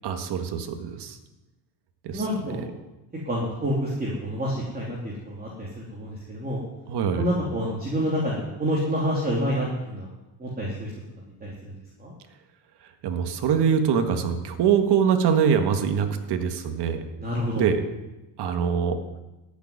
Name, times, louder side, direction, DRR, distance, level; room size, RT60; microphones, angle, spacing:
voice 1, 0.0-1.2 2.0-2.2 6.9-7.3 13.0-17.0 17.6-17.8 18.4-19.0, right 7 dB, 55° right, 6 dB, 1.7 m, -23 dB
voice 2, 2.1-2.7 3.2-6.6 7.2-10.1 10.4-10.9 11.4-11.7 12.0-12.1 17.2-17.7, equal, 20° right, -4 dB, 3.0 m, -28 dB
14.0 x 7.0 x 9.6 m, 1.0 s
cardioid pair, 125°, 47 cm